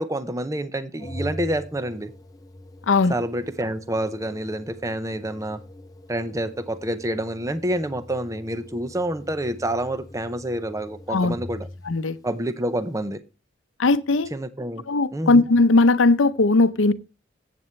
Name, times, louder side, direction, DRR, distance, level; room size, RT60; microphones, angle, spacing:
voice 1, 0.0-2.1 3.1-5.6 6.1-11.7 12.2-13.2 14.3-14.8 15.1-15.4, right 1 dB, 15° right, 0.7 m, -28 dB
Organ, 1.0-12.0, left 1 dB, 20° left, 0.6 m, -42 dB
voice 2, 11.9-12.2 13.8-14.3 14.9-16.9, left 3 dB, 85° left, 0.7 m, -18 dB
14.0 x 8.5 x 3.2 m
head